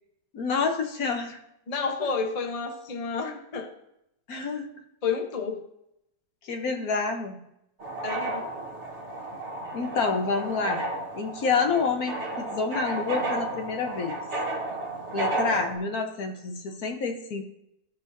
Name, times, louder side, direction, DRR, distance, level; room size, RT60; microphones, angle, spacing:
voice 1, 0.3-1.4 4.3-4.7 6.4-7.4 9.7-10.8 11.1-14.2 15.1-17.4, left 4 dB, 60° left, 4 dB, 1.3 m, -28 dB
voice 2, 1.7-3.7 5.0-5.6 8.0-8.5, left 5 dB, 40° left, 4 dB, 0.5 m, -30 dB
sound 1, 7.8-15.8, right 2 dB, 40° right, 1.5 m, -32 dB
15.0 x 5.5 x 2.6 m, 0.82 s
omnidirectional pair, 2.0 m